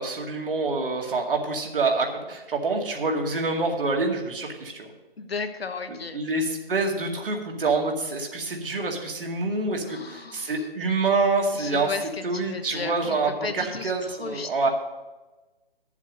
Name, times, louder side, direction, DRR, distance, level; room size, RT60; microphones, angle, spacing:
voice 1, 0.0-4.9 6.1-11.9 12.2-14.7, right 3 dB, 65° right, 1 dB, 2.2 m, -26 dB
voice 2, 5.2-6.2 9.9-10.7 11.5-14.7, left 4 dB, 80° left, 7 dB, 1.3 m, -35 dB
10.0 x 7.3 x 6.5 m, 1.1 s
hypercardioid pair, 160°, 30 cm